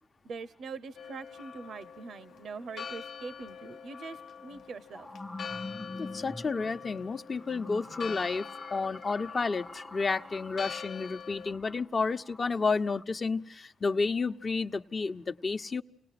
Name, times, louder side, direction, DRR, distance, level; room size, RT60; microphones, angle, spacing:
voice 1, 0.2-5.1, right 4 dB, 65° right, 14 dB, 0.9 m, -43 dB
Church bell, 1.0-11.5, left 6 dB, 70° left, 0.9 m, -44 dB
sound 1, 3.7-3.8 4.5-13.0, left 2 dB, 10° left, 0.9 m, -46 dB
voice 2, 6.0-15.8, left 4 dB, 40° left, 8 dB, 1.0 m, -31 dB
29.5 x 19.0 x 5.9 m, 0.67 s
cardioid pair, 70°, 0 cm